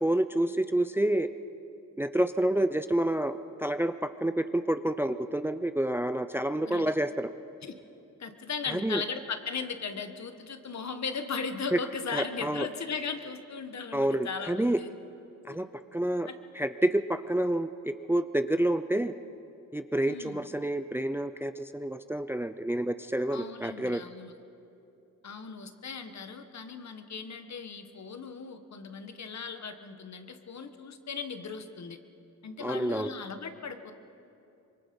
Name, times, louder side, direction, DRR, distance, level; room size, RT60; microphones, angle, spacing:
voice 1, 0.0-1.3 2.0-7.3 8.7-9.0 11.7-11.8 12.1-12.7 13.9-14.8 15.5-15.7 15.9-16.3 16.6-19.1 19.7-24.0 32.6-33.1, right 1 dB, 5° right, 11 dB, 0.5 m, -28 dB
voice 2, 8.2-14.9 15.5-15.6 16.2-16.4 20.1-20.4 23.3-24.3 25.2-32.0 32.4-33.9, left 5 dB, 55° left, 7 dB, 1.5 m, -37 dB
25.0 x 23.0 x 5.3 m, 2.7 s
cardioid pair, 90°, 32 cm